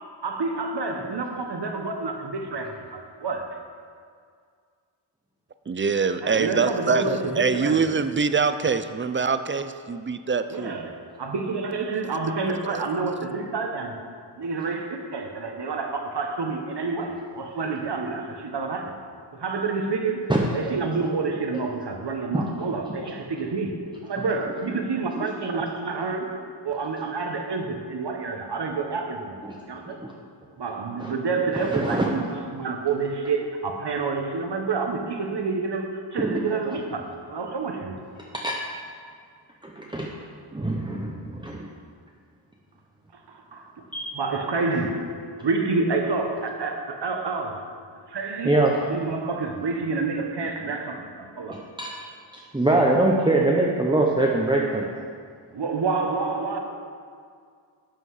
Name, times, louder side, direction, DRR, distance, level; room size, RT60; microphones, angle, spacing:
voice 1, 0.2-3.6 6.2-7.9 10.5-14.0 14.4-19.0 19.3-29.4 29.7-30.0 30.6-38.0 43.1-43.7 44.1-45.1 45.4-47.7 48.1-48.6 48.9-51.7 55.5-56.6, right 4 dB, 55° right, 4 dB, 1.3 m, -28 dB
voice 2, 5.7-7.0 7.4-10.8 12.7-12.8, right 5 dB, 25° right, 11 dB, 0.4 m, -24 dB
voice 3, 31.6-32.0 36.2-36.4 38.3-38.6 39.6-40.1 40.5-41.6 43.9-44.2 48.4-48.7 51.5-51.9 52.5-54.9, right 2 dB, 10° right, -2 dB, 0.8 m, -23 dB
12.0 x 7.7 x 4.9 m, 2.2 s
wide cardioid pair, 120°, 48 cm